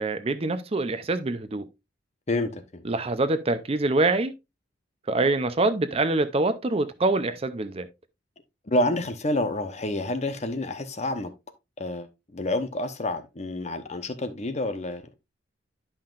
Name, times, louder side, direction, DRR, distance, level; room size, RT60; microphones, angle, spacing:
voice 1, 0.0-1.7 2.8-4.3 5.1-7.9, right 2 dB, 30° right, 0.6 m, -25 dB
voice 2, 2.3-2.8 8.7-11.3 11.8-12.1 12.3-15.1, left 1 dB, 35° left, 0.9 m, -28 dB
10.5 x 5.7 x 2.5 m
head